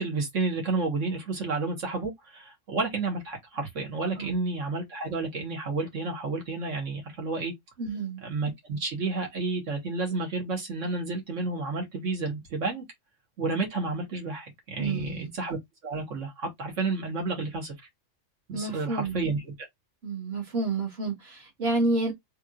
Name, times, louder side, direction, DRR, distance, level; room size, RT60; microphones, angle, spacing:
voice 1, 0.0-7.5 8.2-12.8 13.4-17.7 18.5-19.5, right 3 dB, 75° right, 1.8 m, -31 dB
voice 2, 7.8-8.2 14.8-15.3 18.5-19.3 20.0-22.1, right 3 dB, 55° right, 1.9 m, -29 dB
3.6 x 3.2 x 2.5 m
omnidirectional pair, 1.3 m